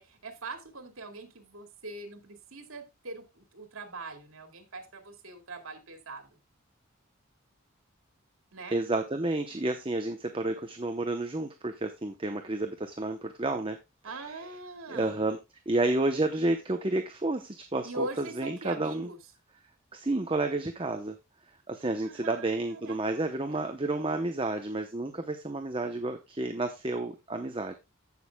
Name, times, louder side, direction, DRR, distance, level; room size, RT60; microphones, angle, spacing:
voice 1, 0.0-6.4 8.5-8.8 9.5-9.7 14.0-15.2 17.8-19.2 21.9-23.6, right 2 dB, 85° right, 6 dB, 2.3 m, -42 dB
voice 2, 8.7-13.8 14.9-15.4 15.7-19.1 19.9-21.1 21.7-27.7, right 2 dB, 25° right, 6 dB, 0.8 m, -30 dB
15.5 x 6.4 x 2.3 m, 0.23 s
head